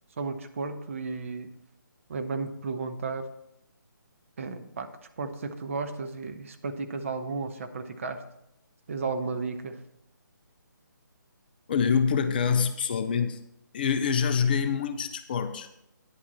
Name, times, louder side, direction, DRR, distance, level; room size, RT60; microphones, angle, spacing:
voice 1, 0.2-1.5 2.1-3.3 4.4-4.9 5.2-8.2 8.9-9.8, right 4 dB, 40° right, 7 dB, 0.8 m, -33 dB
voice 2, 11.7-13.4 13.7-15.7, left 6 dB, 30° left, 9 dB, 0.5 m, -25 dB
9.9 x 8.4 x 4.2 m, 0.81 s
figure-of-eight pair, 145°, 11 cm